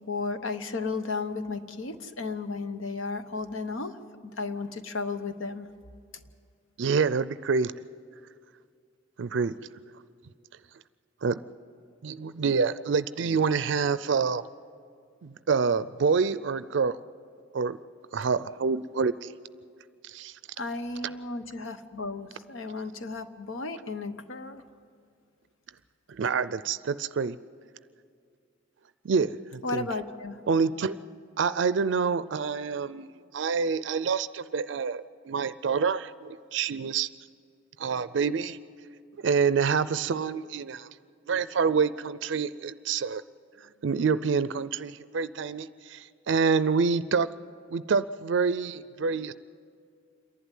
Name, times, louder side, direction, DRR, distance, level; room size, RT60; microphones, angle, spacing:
voice 1, 0.0-5.7 20.6-24.6 29.6-30.5, left 3 dB, 85° left, 10 dB, 1.0 m, -34 dB
voice 2, 6.8-7.7 9.2-9.5 11.2-11.4 12.0-14.5 15.2-17.0 17.5-17.8 18.1-19.3 20.0-20.4 26.1-27.4 29.0-29.9 30.5-31.0 31.4-33.1 33.3-37.1 37.8-38.6 39.2-40.9 41.3-43.2 43.6-47.3 47.7-49.3, right 5 dB, 65° right, 15 dB, 0.4 m, -27 dB
27.5 x 11.5 x 9.2 m, 2.3 s
head